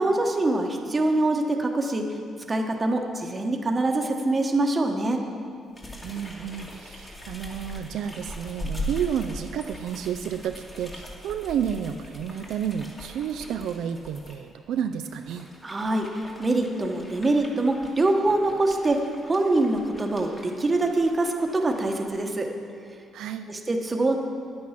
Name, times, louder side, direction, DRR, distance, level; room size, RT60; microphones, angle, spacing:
voice 1, 0.0-2.1 2.5-5.2 15.6-19.0 19.2-22.5 23.5-24.2, right 2 dB, 25° right, 3 dB, 1.1 m, -24 dB
sound 1, 5.7-14.4 14.9-22.2, equal, 25° left, 2.1 m, -41 dB
voice 2, 6.0-15.5 23.1-23.5, right 8 dB, 80° right, 7 dB, 0.4 m, -31 dB
10.0 x 8.6 x 5.9 m, 2.3 s
cardioid pair, 90°, 0 cm